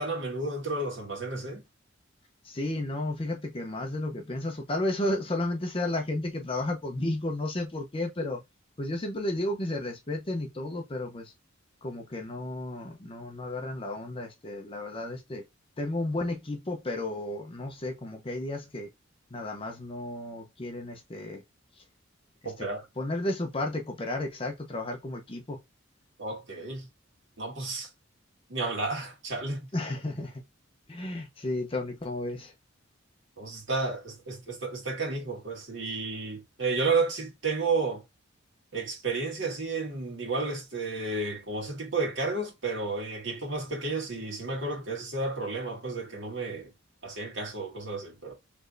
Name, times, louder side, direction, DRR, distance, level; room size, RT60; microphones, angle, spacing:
voice 1, 0.0-1.6 22.4-22.9 26.2-26.9 27.4-27.9 28.5-29.7 33.4-38.0 38.7-46.7 47.0-48.3, right 3 dB, 65° right, 2.0 m, -32 dB
voice 2, 2.4-8.4 8.8-11.3 11.8-15.4 15.8-18.9 19.3-21.4 23.0-25.6 29.7-30.4 30.9-32.5, left 1 dB, 30° left, 0.7 m, -33 dB
4.2 x 3.3 x 2.5 m
head